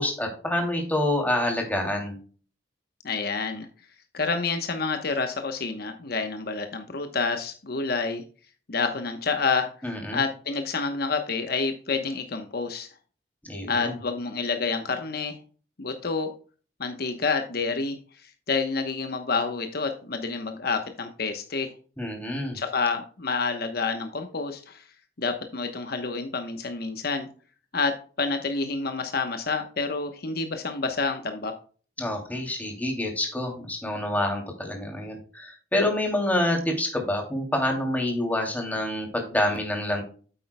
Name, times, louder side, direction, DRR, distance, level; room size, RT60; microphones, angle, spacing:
voice 1, 0.0-2.2 9.8-10.2 13.4-14.0 22.0-22.6 32.0-40.0, left 1 dB, 10° left, 1 dB, 2.7 m, -27 dB
voice 2, 3.0-3.7 4.1-8.2 8.7-9.7 10.1-12.9 13.7-15.4 15.8-16.3 16.8-21.7 22.5-24.8 25.2-27.3 27.7-31.5, left 4 dB, 60° left, 6 dB, 1.0 m, -28 dB
9.1 x 8.4 x 2.2 m, 0.39 s
head